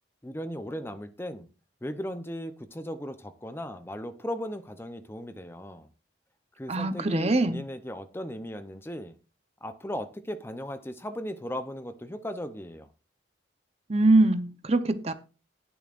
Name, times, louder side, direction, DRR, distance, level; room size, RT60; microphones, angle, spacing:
voice 1, 0.2-1.5 1.8-5.9 6.6-9.1 9.6-12.9, equal, 10° left, 0.6 m, -37 dB
voice 2, 6.7-7.6 13.9-15.1, right 2 dB, 35° right, 0.8 m, -23 dB
19.5 x 7.0 x 2.5 m
head